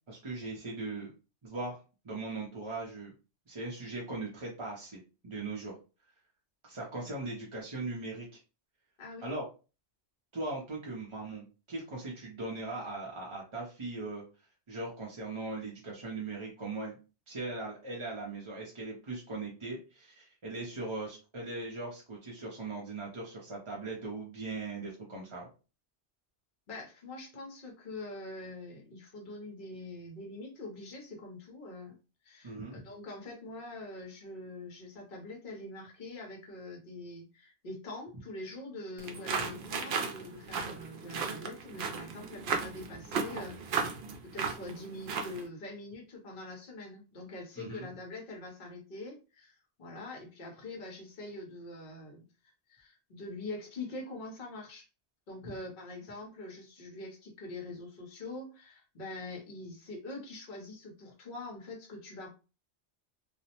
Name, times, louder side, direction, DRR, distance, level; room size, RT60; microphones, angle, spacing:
voice 1, 0.1-1.1 1.4-1.8 2.0-3.1 3.5-5.8 6.6-8.4 9.2-9.4 10.3-14.2 14.7-17.0 17.3-25.5 32.4-32.8 47.6-47.9 55.4-55.5, right 2 dB, 35° right, -3 dB, 0.5 m, -39 dB
voice 2, 9.0-9.3 26.7-32.0 32.2-43.9 44.2-52.2 52.7-54.9 55.3-62.3, left 2 dB, 55° left, 0 dB, 0.9 m, -44 dB
sound 1, 39.0-45.5, right 5 dB, 65° right, 0.7 m, -35 dB
2.5 x 2.0 x 2.8 m, 0.32 s
omnidirectional pair, 1.2 m